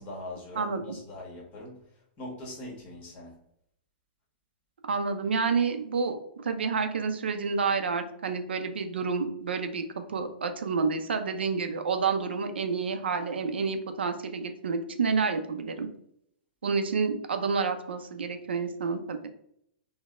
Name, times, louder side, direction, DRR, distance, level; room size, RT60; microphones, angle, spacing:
voice 1, 0.0-1.8 2.2-3.3, left 1 dB, 30° left, -2 dB, 1.2 m, -41 dB
voice 2, 0.6-1.0 4.9-6.2 6.4-9.8 10.1-15.9 16.6-19.3, right 5 dB, 90° right, 7 dB, 0.4 m, -29 dB
3.9 x 2.0 x 2.4 m, 0.72 s
hypercardioid pair, 130°, 6 cm